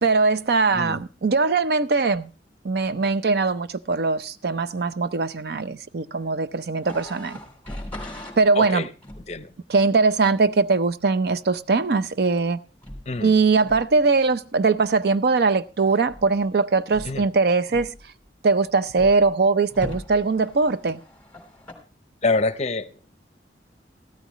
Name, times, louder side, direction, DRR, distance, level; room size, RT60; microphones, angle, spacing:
voice 1, 0.0-2.3 2.6-7.4 8.4-8.9 9.7-12.6 13.2-17.9 18.4-21.0, right 4 dB, 60° right, 0.5 m, -21 dB
sound 1, 6.8-8.4 9.0-9.4 12.8-13.2 13.6-14.0 16.0-16.4 16.9-17.3 17.7-18.2 18.9-19.3 19.7-21.7, left 1 dB, 10° left, 2.9 m, -39 dB
voice 2, 8.6-8.9 9.3-9.5 13.1-13.3 17.0-17.2 22.2-22.9, left 3 dB, 40° left, 0.7 m, -25 dB
14.5 x 13.0 x 3.1 m
head